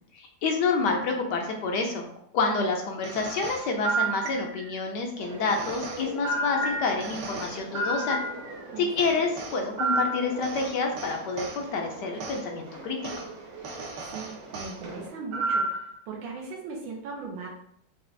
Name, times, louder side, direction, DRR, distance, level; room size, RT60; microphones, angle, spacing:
voice 1, 0.2-2.0 2.3-8.2 8.8-13.0, left 4 dB, 75° left, 2 dB, 1.1 m, -28 dB
sound 1, 3.0-4.8 5.5-8.6 9.0-11.6 12.2-12.4 13.0-13.2 13.6-14.8 15.3-15.9, right 2 dB, 70° right, 1.2 m, -31 dB
sound 2, 5.2-15.1, right 2 dB, 50° right, 0.9 m, -42 dB
voice 2, 14.1-17.5, right 4 dB, 90° right, -2 dB, 1.5 m, -39 dB
5.0 x 2.4 x 3.3 m, 0.71 s
omnidirectional pair, 2.1 m